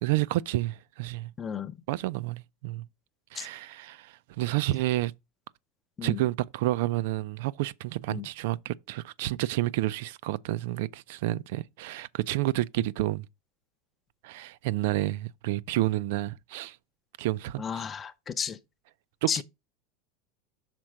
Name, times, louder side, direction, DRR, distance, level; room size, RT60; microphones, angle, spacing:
voice 1, 0.0-1.3 1.9-2.8 3.3-5.1 6.0-13.3 14.2-16.8 17.2-17.8 19.2-19.4, right 16 dB, 65° right, 0.4 m, -30 dB
voice 2, 1.4-1.7 3.4-3.5 6.0-6.2 8.1-8.2 17.6-18.6 19.3-19.4, left 7 dB, 20° left, 0.5 m, -33 dB
5.9 x 4.4 x 6.3 m
supercardioid pair, 170°, 0 cm